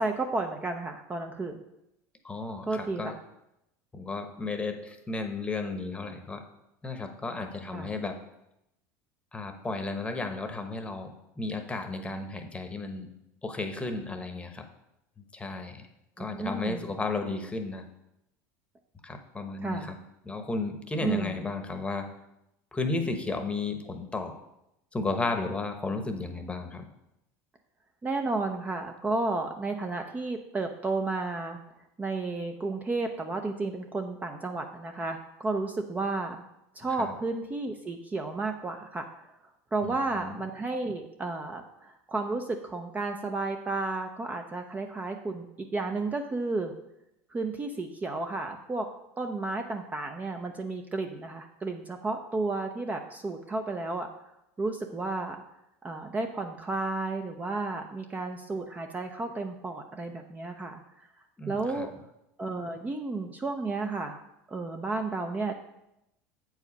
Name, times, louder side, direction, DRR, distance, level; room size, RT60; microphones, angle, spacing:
voice 1, 0.0-1.6 2.7-3.2 7.7-7.9 16.2-16.8 19.6-19.9 21.0-21.5 28.0-31.6 32.0-36.4 36.7-39.1 39.7-46.7 47.3-48.9 49.2-54.1 54.6-55.4 55.8-61.1 61.5-61.9 62.4-64.2 64.5-65.5, right 3 dB, 20° right, 5 dB, 0.6 m, -32 dB
voice 2, 2.2-3.1 3.9-6.4 6.8-8.2 9.3-13.1 13.4-14.6 15.3-15.8 16.2-17.8 19.0-20.0 20.2-22.1 22.7-24.4 24.9-26.8 37.0-37.1 39.8-40.4 61.4-61.9, left 3 dB, 15° left, 6 dB, 1.0 m, -33 dB
7.9 x 4.8 x 5.3 m, 0.85 s
supercardioid pair, 110°, 8 cm